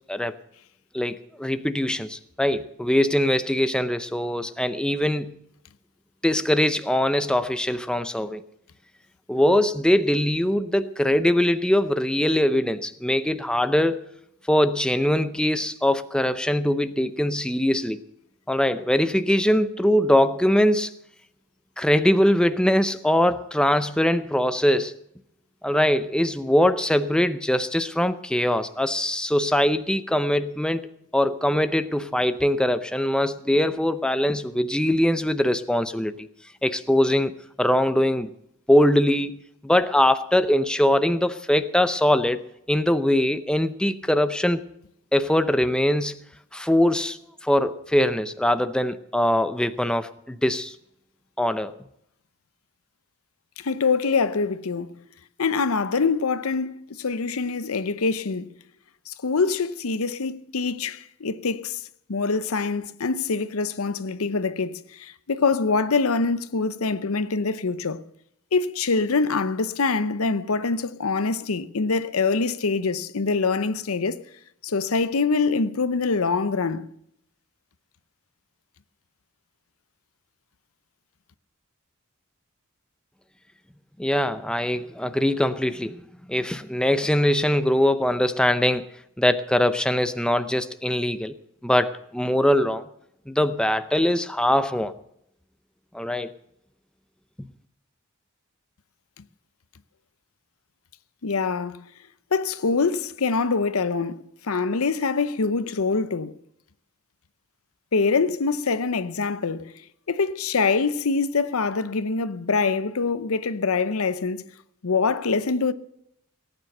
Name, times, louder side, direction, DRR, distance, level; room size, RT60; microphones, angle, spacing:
voice 1, 0.9-5.4 6.2-8.4 9.3-14.0 14.5-18.0 18.5-20.9 21.8-24.9 25.6-30.9 31.1-36.3 36.6-37.3 37.6-38.3 38.7-42.4 42.7-44.6 45.1-46.2 46.5-50.7 51.4-51.7 84.0-86.0 86.3-88.9 89.2-91.4 91.6-92.9 93.3-94.9 95.9-96.3, left 1 dB, 5° left, 0.6 m, -22 dB
voice 2, 53.6-54.9 55.4-58.5 59.1-61.8 62.1-68.0 68.5-74.2 74.6-76.9 101.2-101.8 102.3-106.3 107.9-109.7 110.1-114.5 114.8-115.7, left 4 dB, 80° left, 0.8 m, -24 dB
18.0 x 9.3 x 6.6 m
head